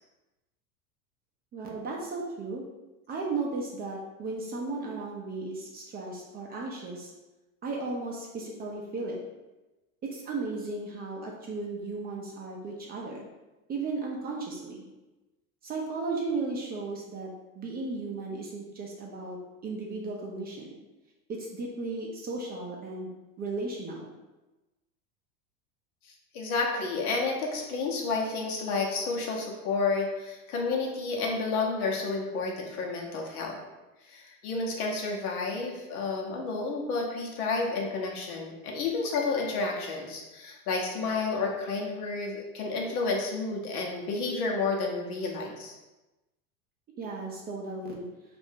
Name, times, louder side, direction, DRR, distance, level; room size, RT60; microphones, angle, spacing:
voice 1, 1.5-2.6 3.1-7.1 7.6-9.2 10.0-13.2 13.7-14.8 15.6-17.3 17.5-19.4 19.6-20.7 21.3-23.1 23.4-24.1 47.0-48.0, right 3 dB, 25° right, -2 dB, 0.4 m, -35 dB
voice 2, 26.0-33.6 34.0-45.7, left 3 dB, 75° left, -1 dB, 0.9 m, -31 dB
2.6 x 2.5 x 3.5 m, 1.1 s
hypercardioid pair, 105°, 44 cm